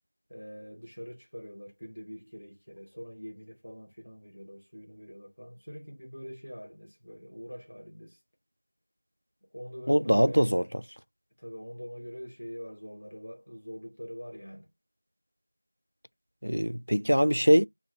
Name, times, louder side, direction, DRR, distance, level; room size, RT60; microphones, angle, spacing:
voice 1, 0.3-8.2 9.4-10.5 11.4-14.7, equal, 35° left, 1.0 m, -44 dB
voice 2, 9.9-10.6 16.4-17.7, equal, 90° right, 0.3 m, -22 dB
2.7 x 2.3 x 3.1 m
figure-of-eight pair, 180°, 0 cm